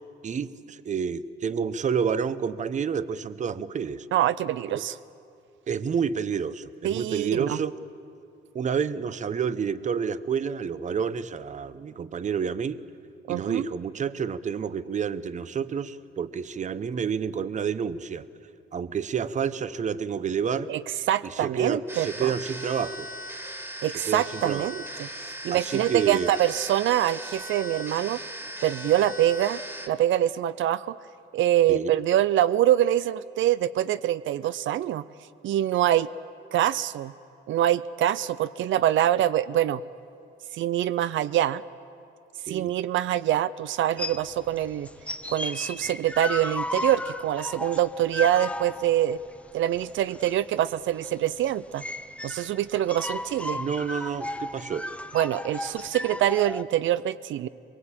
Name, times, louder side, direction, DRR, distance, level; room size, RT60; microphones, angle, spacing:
voice 1, 0.2-4.1 4.7-4.9 5.7-7.8 8.5-12.8 13.3-18.3 18.7-20.7 21.2-23.1 23.9-24.7 25.5-26.3 31.7-31.9 42.5-42.7 53.5-54.9, right 7 dB, 40° right, 15 dB, 0.8 m, -29 dB
voice 2, 4.1-4.9 6.8-7.6 13.3-13.7 20.7-20.8 21.1-22.3 23.8-25.1 25.4-28.2 28.6-29.6 29.9-31.0 31.3-35.0 35.4-36.1 36.5-37.1 37.5-39.8 40.5-41.6 42.5-44.9 45.3-49.2 49.5-51.8 52.2-53.6 55.1-57.5, right 12 dB, 80° right, 15 dB, 0.5 m, -25 dB
sound 1, 21.9-29.9, equal, 10° right, 1.9 m, -38 dB
sound 2, 44.0-56.6, left 1 dB, 5° left, 0.7 m, -35 dB
23.5 x 22.5 x 8.8 m, 2.5 s
cardioid pair, 130°, 19 cm